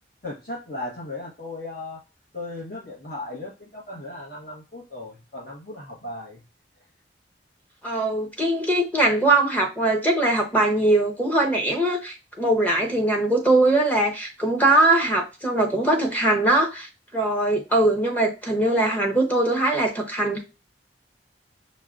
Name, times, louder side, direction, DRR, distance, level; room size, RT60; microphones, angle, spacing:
voice 1, 0.2-2.0 2.3-6.4, left 2 dB, 55° left, -6 dB, 1.0 m, -36 dB
voice 2, 7.8-20.4, right 2 dB, 10° left, -1 dB, 0.7 m, -21 dB
5.5 x 2.1 x 2.4 m, 0.29 s
head